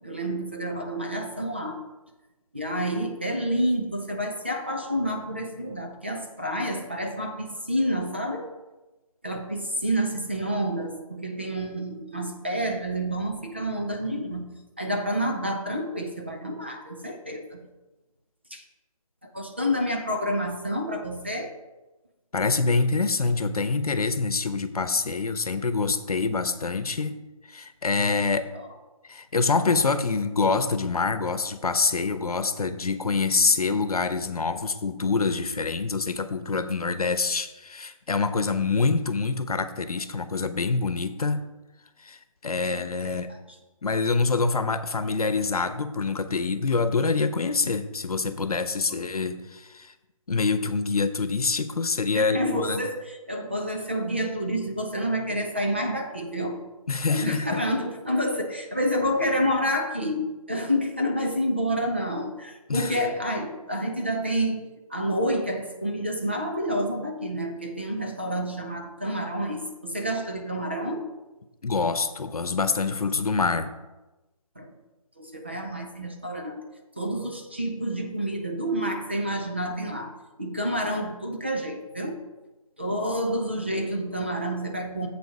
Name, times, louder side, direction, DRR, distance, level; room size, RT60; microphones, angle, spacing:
voice 1, 0.0-1.8 2.5-8.5 9.2-14.5 14.8-17.7 18.5-18.6 19.2-21.5 28.5-28.7 42.4-43.2 52.1-56.6 57.1-64.6 64.9-71.1 74.6-74.7 75.2-76.6 77.0-80.1 80.4-82.2 82.8-85.1, equal, 20° right, 2 dB, 0.6 m, -29 dB
voice 2, 22.3-27.2 27.5-28.5 29.1-41.4 42.0-43.3 43.8-49.9 50.3-52.8 56.9-57.6 62.7-63.0 71.6-73.7, left 4 dB, 90° left, 11 dB, 0.9 m, -26 dB
7.7 x 7.0 x 4.8 m, 1.1 s
hypercardioid pair, 180°, 18 cm